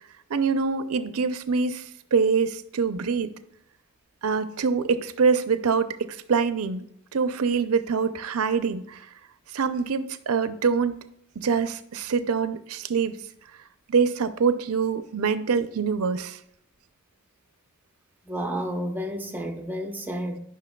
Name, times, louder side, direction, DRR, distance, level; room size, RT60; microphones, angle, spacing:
voice 1, 0.3-1.8 2.1-3.3 4.2-6.9 7.1-9.0 9.5-11.0 11.4-13.2 13.9-16.4, right 5 dB, 75° right, 0.5 m, -24 dB
voice 2, 18.2-20.4, equal, 10° right, 0.7 m, -31 dB
10.5 x 5.9 x 2.2 m
head